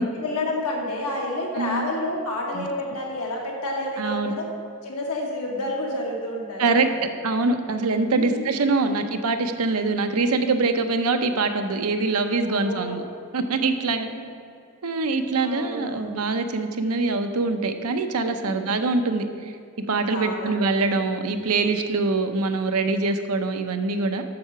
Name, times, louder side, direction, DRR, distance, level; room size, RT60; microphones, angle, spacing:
voice 1, 0.2-4.5 4.8-7.0 8.2-8.4 8.8-9.1 12.5-13.1 13.8-14.3 15.4-16.2 18.4-18.7 20.1-20.7, left 1 dB, 80° left, -1 dB, 1.9 m, -30 dB
voice 2, 1.6-1.9 2.5-2.6 4.0-4.3 6.6-13.0 13.3-14.1 14.8-19.3 19.8-24.2, right 3 dB, 75° right, 7 dB, 0.7 m, -24 dB
7.7 x 6.6 x 5.9 m, 2.3 s
head